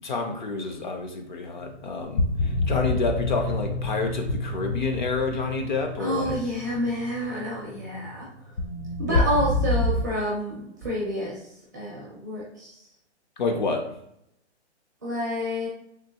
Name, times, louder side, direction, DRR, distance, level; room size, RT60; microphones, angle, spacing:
voice 1, 0.0-6.4 7.7-8.1 9.1-9.2 13.4-13.8, left 3 dB, 45° left, 4 dB, 0.6 m, -29 dB
sound 1, 1.6-10.0, left 2 dB, 75° left, 0.8 m, -28 dB
voice 2, 6.0-8.5 9.0-12.9 15.0-15.7, equal, 15° right, -6 dB, 0.4 m, -29 dB
3.6 x 2.7 x 2.8 m, 0.76 s
hypercardioid pair, 165°, 35 cm